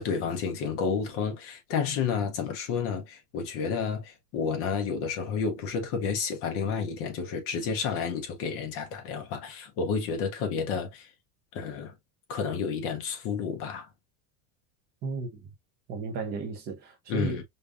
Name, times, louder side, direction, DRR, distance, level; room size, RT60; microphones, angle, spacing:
voice 1, 0.0-11.1 11.5-11.9 12.3-13.9 17.1-17.4, left 6 dB, 30° left, 0.7 m, -30 dB
voice 2, 15.0-15.5 15.9-17.4, right 4 dB, 20° right, 0.7 m, -34 dB
5.2 x 2.3 x 2.4 m
supercardioid pair, 175°, 44 cm